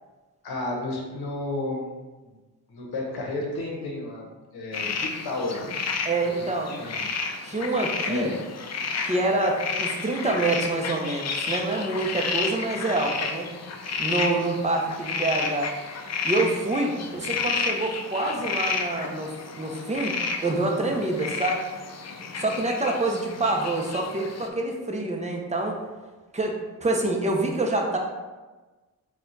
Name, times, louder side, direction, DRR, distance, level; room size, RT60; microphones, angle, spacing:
voice 1, 0.4-1.9 2.2-2.4 2.7-4.3 4.5-5.6 6.4-7.1 8.1-8.4 17.3-17.4, left 2 dB, 90° left, -1 dB, 0.9 m, -32 dB
sound 1, 4.7-24.5, left 4 dB, 45° left, 0.5 m, -31 dB
voice 2, 6.0-6.8 7.4-8.3 9.0-13.5 14.0-15.7 16.2-20.1 20.4-21.6 22.4-25.8 26.3-28.0, right 2 dB, 20° right, 1 dB, 0.7 m, -26 dB
4.2 x 2.4 x 3.8 m, 1.2 s
cardioid pair, 85°, 37 cm